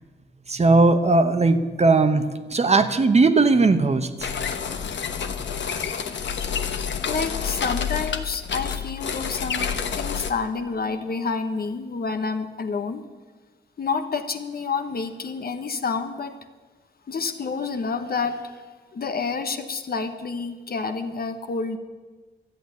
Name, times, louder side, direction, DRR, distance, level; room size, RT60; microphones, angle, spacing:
voice 1, 0.5-2.2 2.5-4.3, right 3 dB, 35° right, 9 dB, 1.0 m, -18 dB
sound 1, 4.2-10.3, left 7 dB, 75° left, 1.1 m, -28 dB
voice 2, 7.1-13.1 13.8-16.4 17.1-18.6 18.9-21.8, left 4 dB, 55° left, 7 dB, 1.2 m, -29 dB
13.0 x 9.1 x 9.4 m, 1.3 s
wide cardioid pair, 100°, 19 cm